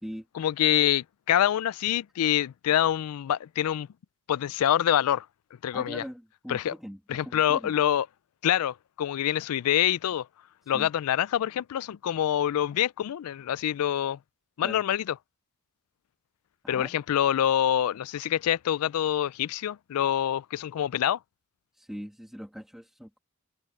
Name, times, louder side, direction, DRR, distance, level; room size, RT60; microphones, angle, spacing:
voice 1, 0.3-3.9 4.3-5.3 5.6-6.0 6.5-6.7 7.1-8.1 8.4-10.3 10.7-14.2 14.6-15.1 16.7-21.2, left 10 dB, 70° left, 0.3 m, -26 dB
voice 2, 5.7-7.8 10.7-10.9 14.6-14.8 16.6-17.0 21.7-23.2, equal, ahead, 2.3 m, -41 dB
head